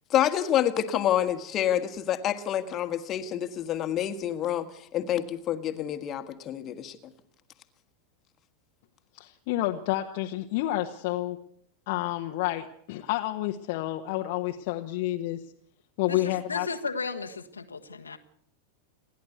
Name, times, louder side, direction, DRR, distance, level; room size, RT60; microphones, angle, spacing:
voice 1, 0.1-7.0, left 11 dB, 30° left, 8 dB, 1.7 m, -28 dB
voice 2, 9.2-11.4 11.9-15.4 16.0-16.7, left 15 dB, 50° left, 3 dB, 1.3 m, -29 dB
voice 3, 16.1-18.2, left 4 dB, 75° left, 6 dB, 1.5 m, -35 dB
28.5 x 11.0 x 8.2 m, 0.66 s
figure-of-eight pair, 90°, 0 cm